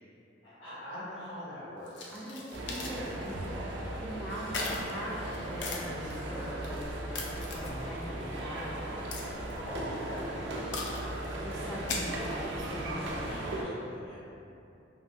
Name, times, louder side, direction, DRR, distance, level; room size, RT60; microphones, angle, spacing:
voice 1, 0.4-2.3 9.6-11.9 13.1-14.2, equal, 85° left, -11 dB, 1.2 m, -44 dB
sound 1, 1.9-3.5 3.8-3.9 4.3-6.7 7.1-8.0 8.4-8.5 9.1-9.7 10.7-11.2 11.7-12.4 13.1-13.5, left 3 dB, 65° left, 0.4 m, -39 dB
voice 2, 2.1-3.7 4.0-7.0 7.4-9.1 11.3-13.5, equal, 5° left, -8 dB, 0.4 m, -41 dB
sound 2, 2.5-13.6, right 1 dB, 70° right, 0.4 m, -37 dB
2.6 x 2.5 x 2.7 m, 2.7 s
head